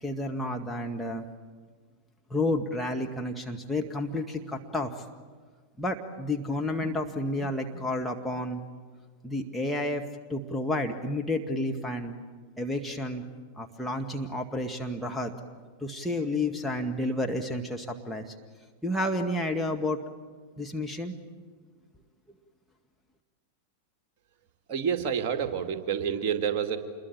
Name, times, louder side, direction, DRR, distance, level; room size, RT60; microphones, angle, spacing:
voice 1, 0.0-1.2 2.3-4.9 5.8-8.6 9.2-10.0 10.3-12.1 12.6-13.2 13.6-15.3 15.8-18.3 18.8-20.0 20.6-21.2, left 1 dB, ahead, 1 dB, 1.8 m, -30 dB
voice 2, 24.7-26.8, right 7 dB, 40° right, 7 dB, 2.5 m, -28 dB
27.5 x 22.0 x 8.9 m, 1.5 s
figure-of-eight pair, 90°, 0 cm